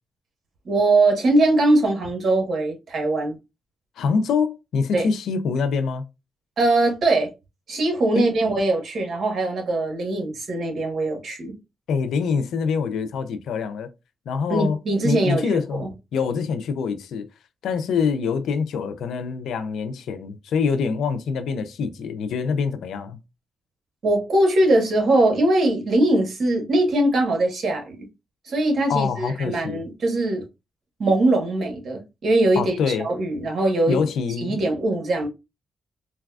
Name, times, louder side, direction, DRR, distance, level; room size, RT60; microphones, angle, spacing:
voice 1, 0.6-3.3 4.9-5.1 6.6-7.3 7.7-11.5 14.5-15.9 24.0-28.0 28.5-30.4 31.0-34.0 34.4-35.3, right 2 dB, 60° right, 1.3 m, -21 dB
voice 2, 4.0-6.0 8.1-8.3 11.9-13.9 14.3-14.8 15.0-15.9 16.1-17.3 17.6-23.2 28.9-29.8 32.6-33.1 33.9-34.6, left 5 dB, 85° left, 0.5 m, -25 dB
4.0 x 2.3 x 2.3 m
cardioid pair, 75°, 0 cm